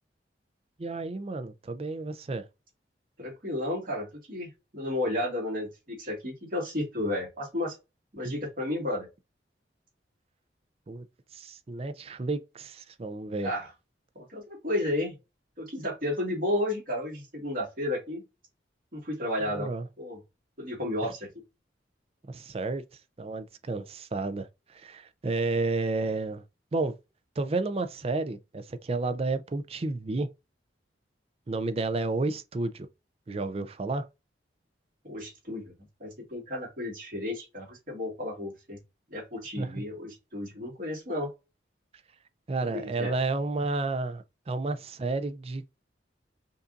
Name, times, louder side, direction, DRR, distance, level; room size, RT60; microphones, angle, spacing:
voice 1, 0.8-2.5 8.2-8.4 10.9-11.0 11.3-13.5 19.5-19.9 21.0-21.1 22.3-22.8 23.2-26.4 26.7-27.0 27.4-30.3 31.5-32.9 33.3-34.1 39.6-39.8 42.5-45.7, right 3 dB, 35° right, 0.4 m, -31 dB
voice 2, 3.2-7.8 8.1-9.1 13.4-13.7 14.2-15.2 15.6-18.2 18.9-19.7 20.0-20.2 20.6-21.3 35.0-35.7 36.0-38.8 39.1-41.3 42.7-43.1, left 1 dB, 50° right, 2.1 m, -32 dB
5.3 x 2.6 x 2.4 m
head